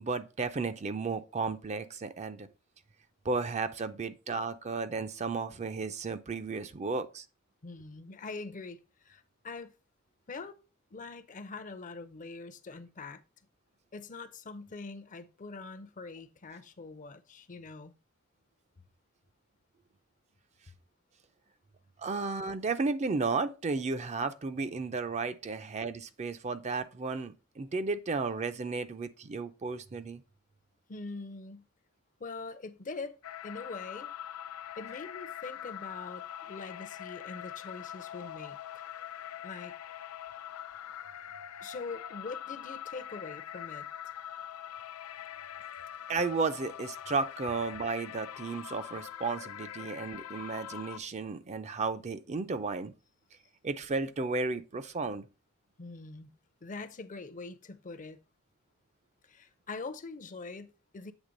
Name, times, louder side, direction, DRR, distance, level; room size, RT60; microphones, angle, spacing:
voice 1, 0.0-2.5 3.2-7.2 22.0-30.2 46.1-52.9 53.6-55.2, right 4 dB, 30° right, 0.4 m, -33 dB
voice 2, 7.6-9.7 10.3-10.6 10.9-13.2 13.9-17.9 20.7-20.8 30.9-31.6 32.2-33.2 33.4-34.1 34.8-38.6 39.4-39.7 41.6-43.9 55.8-56.3 56.6-58.2 59.2-61.1, left 3 dB, 35° left, 0.6 m, -43 dB
sound 1, 33.2-51.0, left 10 dB, 85° left, 0.4 m, -43 dB
8.2 x 3.3 x 5.1 m
head